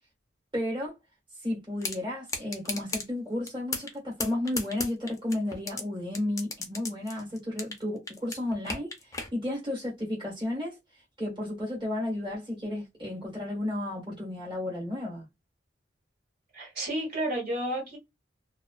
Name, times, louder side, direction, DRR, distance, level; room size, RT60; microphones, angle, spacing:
voice 1, 0.5-0.9 1.4-10.7 11.2-15.2, left 1 dB, 25° right, 1.3 m, -33 dB
sound 1, 1.8-2.0 2.3-3.1 3.5-3.9 4.2-5.8 6.1-7.8 8.1-9.3, left 3 dB, 20° left, 0.5 m, -34 dB
voice 2, 16.5-18.0, right 1 dB, 55° right, 1.4 m, -31 dB
2.4 x 2.3 x 2.2 m
head